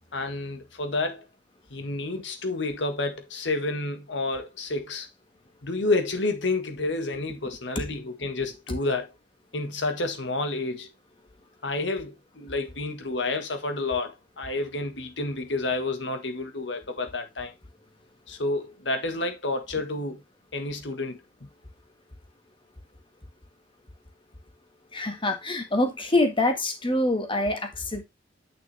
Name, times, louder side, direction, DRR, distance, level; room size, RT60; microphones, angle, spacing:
voice 1, 0.1-1.2 1.7-5.1 5.6-9.1 9.5-10.9 11.6-17.5 18.3-20.2 20.5-21.2, left 2 dB, 70° left, 1.7 m, -29 dB
voice 2, 24.9-28.0, left 2 dB, 30° left, 1.7 m, -25 dB
9.0 x 6.0 x 3.4 m
head